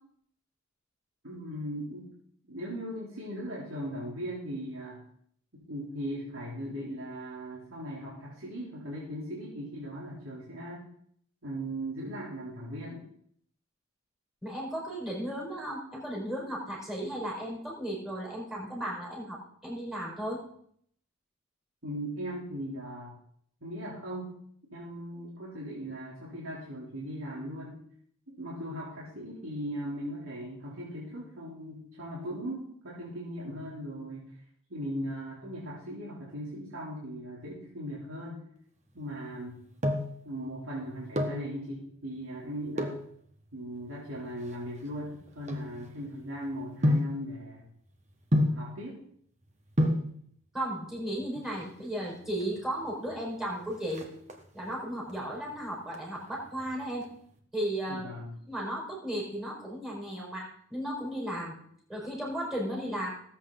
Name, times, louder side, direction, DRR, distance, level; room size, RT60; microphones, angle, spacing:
voice 1, 1.2-2.1 2.4-5.0 5.5-10.8 11.4-13.1 21.8-23.2 23.6-24.4 24.7-27.8 28.3-34.3 34.7-38.4 38.9-39.6 40.2-42.9 43.5-47.7 48.3-49.0 57.9-58.3, equal, 85° right, -6 dB, 3.5 m, -38 dB
voice 2, 14.4-20.4 50.5-54.1 54.5-57.1 57.5-58.1 58.5-61.6 61.9-63.1, right 1 dB, ahead, -3 dB, 5.2 m, -35 dB
sound 1, 39.4-40.2 40.9-41.5 42.7-43.1 43.8-46.2 46.8-47.2 48.3-48.7 49.5-49.6 49.8-50.1 51.2-51.8 52.1-52.2 52.4-52.5 52.9-53.3 53.6-54.7 55.1-55.5 55.9-57.0 57.3-57.4, left 1 dB, 35° right, 1.6 m, -29 dB
19.0 x 8.4 x 4.0 m, 0.64 s
head